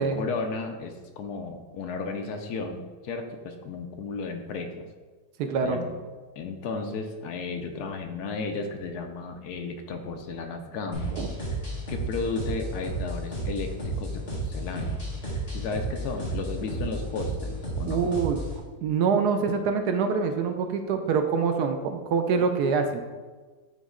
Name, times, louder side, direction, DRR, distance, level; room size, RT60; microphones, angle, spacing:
voice 1, 0.0-4.8 5.6-6.0 6.4-11.1 11.9-15.0 15.5-18.1, left 4 dB, 70° left, 5 dB, 1.1 m, -34 dB
voice 2, 5.4-5.8 11.1-11.3 17.8-18.4 18.8-23.0, right 5 dB, 75° right, 6 dB, 1.1 m, -25 dB
sound 1, 10.9-18.6, right 1 dB, 35° left, 1.7 m, -32 dB
9.1 x 3.1 x 3.7 m, 1.4 s
omnidirectional pair, 1.8 m